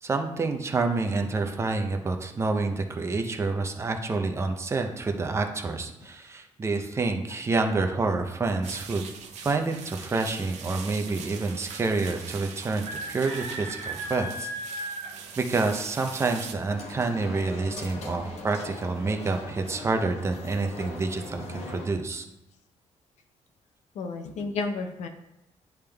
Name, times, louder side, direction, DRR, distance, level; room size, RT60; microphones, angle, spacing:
voice 1, 0.0-9.1 9.4-14.9 15.4-22.2, right 3 dB, 25° right, 4 dB, 0.6 m, -28 dB
sound 1, 8.6-16.5, right 3 dB, 85° right, 0.8 m, -38 dB
sound 2, 16.7-21.9, left 2 dB, 65° left, 1.3 m, -41 dB
voice 2, 24.0-25.1, left 3 dB, 80° left, 6 dB, 0.7 m, -31 dB
10.0 x 3.6 x 3.4 m, 0.91 s
cardioid pair, 160°, 12 cm